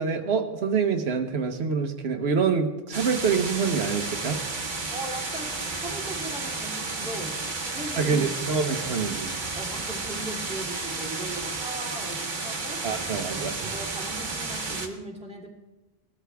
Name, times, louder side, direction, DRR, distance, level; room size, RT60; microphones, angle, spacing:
voice 1, 0.0-4.4 8.0-9.3 12.8-13.7, right 5 dB, 90° right, 6 dB, 1.3 m, -26 dB
sound 1, 2.9-14.9, right 3 dB, 50° right, 1.4 m, -32 dB
voice 2, 4.9-8.3 9.6-12.8 13.6-15.5, right 2 dB, 5° right, -3 dB, 2.7 m, -38 dB
19.0 x 12.5 x 3.4 m, 1.1 s
omnidirectional pair, 1.0 m